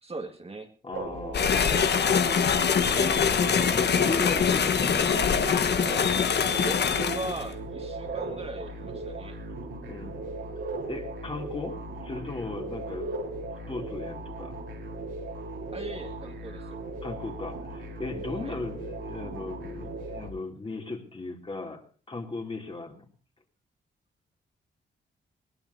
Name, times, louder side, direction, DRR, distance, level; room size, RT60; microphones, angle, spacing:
voice 1, 0.0-0.7 6.6-9.4 15.7-16.8 18.4-18.6, right 3 dB, 30° right, 5 dB, 2.0 m, -38 dB
voice 2, 0.8-2.1 2.9-4.9 9.9-14.6 17.0-23.1, left 3 dB, 30° left, 3 dB, 3.0 m, -37 dB
sound 1, 0.9-20.3, right 2 dB, 85° right, 4.1 m, -37 dB
sound 2, 1.3-7.4, left 6 dB, 60° left, 1.3 m, -24 dB
21.0 x 18.5 x 2.8 m, 0.40 s
cardioid pair, 90°, 20 cm